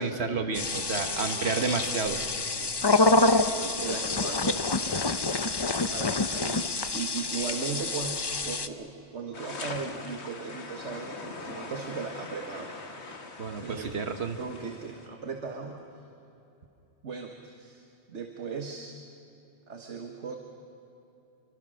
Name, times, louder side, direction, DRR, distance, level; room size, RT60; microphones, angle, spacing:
voice 1, 0.0-2.2 13.4-14.4, right 4 dB, 65° right, 6 dB, 1.6 m, -30 dB
sound 1, 0.5-8.7, left 3 dB, 25° left, 0.7 m, -27 dB
voice 2, 1.0-1.5 2.5-12.7 13.2-13.3 13.6-13.9 14.4-15.8 17.0-19.0 19.7-20.4, right 5 dB, 90° right, 3 dB, 1.7 m, -38 dB
sound 2, 9.3-15.1, left 3 dB, 70° left, 1.9 m, -42 dB
27.0 x 24.0 x 6.4 m, 2.9 s
omnidirectional pair, 1.2 m